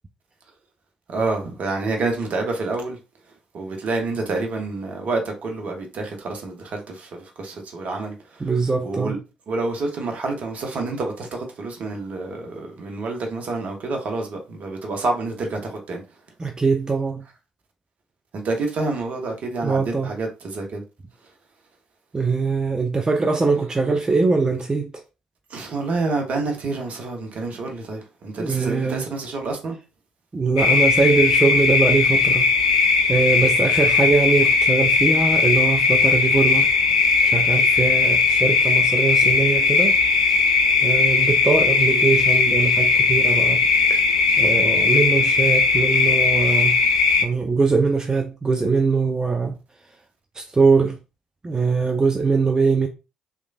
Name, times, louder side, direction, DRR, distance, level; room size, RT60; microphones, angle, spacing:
voice 1, 1.1-3.0 3.5-8.5 8.8-9.2 9.5-16.0 18.3-20.8 25.5-29.8, right 3 dB, 50° right, 0.8 m, -28 dB
voice 2, 8.4-9.2 16.4-17.2 19.6-20.1 22.1-25.0 28.4-29.0 30.3-32.5 33.1-36.7 37.2-40.3 40.8-44.0 44.4-46.8 47.2-49.6 50.3-51.0 51.4-52.9, right 4 dB, 20° right, 0.4 m, -22 dB
sound 1, 30.6-47.2, left 4 dB, 80° left, 0.3 m, -18 dB
3.1 x 2.3 x 2.3 m
figure-of-eight pair, 45°, 3 cm